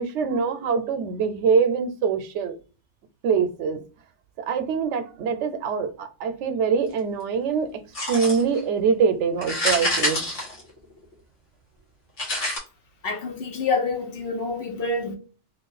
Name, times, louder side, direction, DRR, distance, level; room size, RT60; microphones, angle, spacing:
voice 1, 0.0-2.6 3.2-3.8 4.4-7.8 8.1-10.2, right 6 dB, 85° right, 0.9 m, -24 dB
sound 1, 7.9-8.6 9.4-11.1 12.2-12.6, left 1 dB, 80° left, 1.5 m, -26 dB
voice 2, 13.0-15.2, left 3 dB, 60° left, 0.9 m, -27 dB
3.1 x 2.4 x 3.9 m
omnidirectional pair, 1.2 m